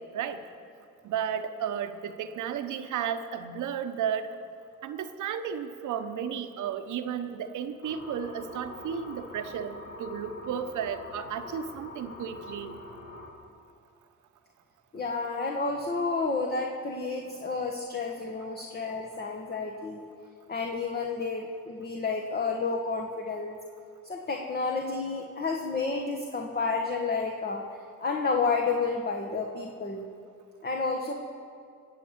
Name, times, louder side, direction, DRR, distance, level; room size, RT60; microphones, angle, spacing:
voice 1, 1.0-4.3 4.8-12.8, right 8 dB, 80° right, 8 dB, 1.1 m, -33 dB
sound 1, 7.8-13.3, left 2 dB, 80° left, 2.8 m, -44 dB
voice 2, 14.9-20.1 20.5-23.6 24.0-27.6 28.0-30.0 30.6-31.1, left 4 dB, 30° left, 1 dB, 1.4 m, -30 dB
20.0 x 7.6 x 8.1 m, 2.4 s
cardioid pair, 90°, 30 cm